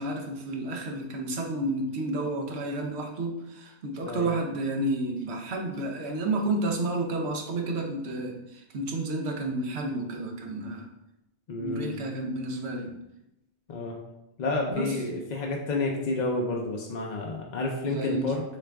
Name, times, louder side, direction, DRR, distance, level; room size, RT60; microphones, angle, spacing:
voice 1, 0.0-10.9 11.6-12.9 14.7-14.9 17.9-18.3, right 2 dB, 75° right, 2 dB, 1.0 m, -31 dB
voice 2, 4.1-4.4 11.5-12.0 13.7-14.0 14.4-18.4, left 2 dB, 50° left, -1 dB, 0.6 m, -30 dB
6.5 x 2.4 x 3.4 m, 0.90 s
omnidirectional pair, 1.1 m